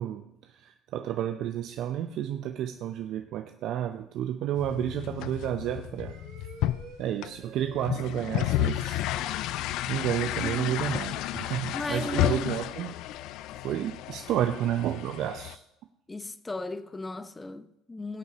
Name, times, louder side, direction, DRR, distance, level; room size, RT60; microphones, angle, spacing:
voice 1, 0.0-6.2 7.0-9.0 9.9-12.9 13.6-15.6, right 11 dB, 60° right, 0.6 m, -31 dB
sound 1, 4.5-15.6, left 15 dB, 65° left, 0.4 m, -32 dB
sound 2, 5.7-9.5, right 5 dB, 75° right, 2.0 m, -50 dB
voice 2, 10.4-10.8 11.7-12.5 16.1-18.2, left 2 dB, 20° left, 0.8 m, -36 dB
18.0 x 8.1 x 2.9 m
hypercardioid pair, 65°, 0 cm